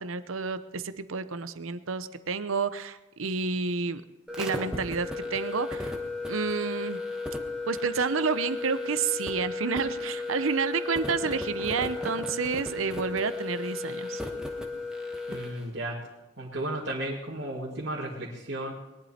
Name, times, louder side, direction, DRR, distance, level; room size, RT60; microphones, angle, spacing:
voice 1, 0.0-4.0 4.4-5.9 6.3-7.0 7.7-14.2, right 5 dB, 80° right, 12 dB, 0.8 m, -30 dB
sound 1, 4.3-15.6, left 3 dB, 5° right, 1.3 m, -34 dB
voice 2, 15.3-16.0 16.4-18.7, right 1 dB, 65° right, -5 dB, 2.3 m, -34 dB
21.0 x 11.5 x 4.3 m, 1.0 s
head